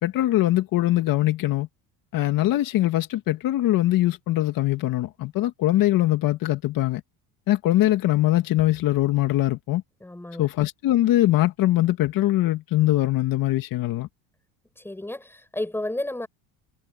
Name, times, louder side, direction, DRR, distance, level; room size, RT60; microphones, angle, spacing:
voice 1, 0.0-1.7 2.1-7.0 7.5-9.8 10.4-14.1, left 15 dB, 60° left, 2.2 m, -22 dB
voice 2, 10.0-10.5 14.8-16.3, left 1 dB, 5° left, 5.6 m, -32 dB
supercardioid pair, 110°, 38 cm